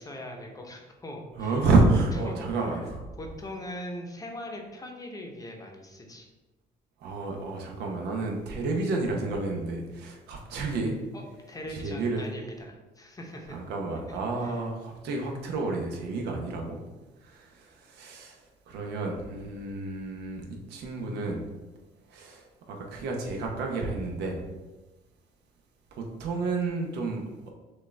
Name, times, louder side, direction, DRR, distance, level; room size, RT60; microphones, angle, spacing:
voice 1, 0.0-1.7 1.9-2.8 3.2-6.3 11.1-11.2 11.5-13.6 14.4-14.6, left 1 dB, 20° left, 1 dB, 0.8 m, -41 dB
voice 2, 1.4-3.1 7.0-11.0 11.7-12.2 13.5-16.8 17.2-18.4 18.7-21.4 22.1-24.5 25.9-27.5, right 3 dB, 80° right, 1 dB, 0.9 m, -30 dB
6.3 x 2.5 x 3.3 m, 1.2 s
cardioid pair, 110°, 17 cm